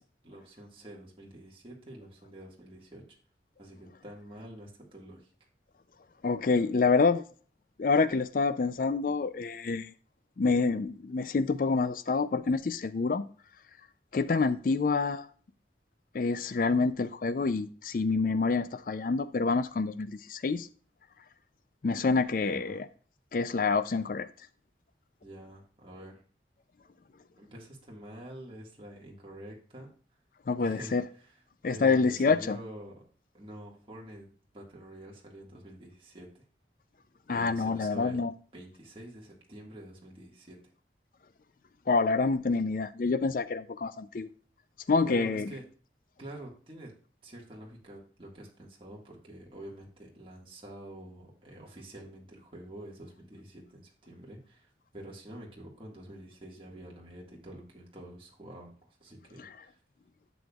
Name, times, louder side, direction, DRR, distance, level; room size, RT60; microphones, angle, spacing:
voice 1, 0.0-3.0 3.6-5.3 22.4-22.8 25.2-26.2 27.4-29.9 30.6-31.4 31.7-33.0 33.3-34.3 34.5-36.4 37.3-38.3 38.5-40.6 45.0-45.6 46.2-46.9 47.2-59.8, right 1 dB, 30° right, 1.7 m, -47 dB
voice 2, 6.2-7.2 7.8-9.9 10.4-13.2 14.1-15.3 16.1-20.7 21.8-22.8 23.3-24.3 30.5-31.0 31.6-32.6 37.3-38.3 41.9-44.3 44.9-45.5, left 4 dB, 50° left, 0.4 m, -27 dB
11.0 x 7.1 x 2.4 m
head